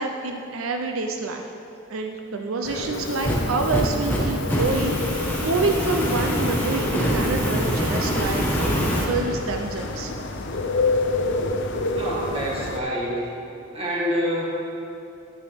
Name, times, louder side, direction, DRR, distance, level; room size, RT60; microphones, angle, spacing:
voice 1, 0.0-1.4 1.9-5.0 5.4-10.1, right 3 dB, 90° right, 4 dB, 0.6 m, -27 dB
sound 1, 2.6-12.8, left 2 dB, 60° left, 0.6 m, -29 dB
Fire, 2.9-9.1, equal, 10° left, 1.2 m, -25 dB
voice 2, 11.8-13.2 13.7-14.5, equal, 30° right, -4 dB, 1.8 m, -27 dB
9.6 x 9.5 x 3.5 m, 2.7 s
head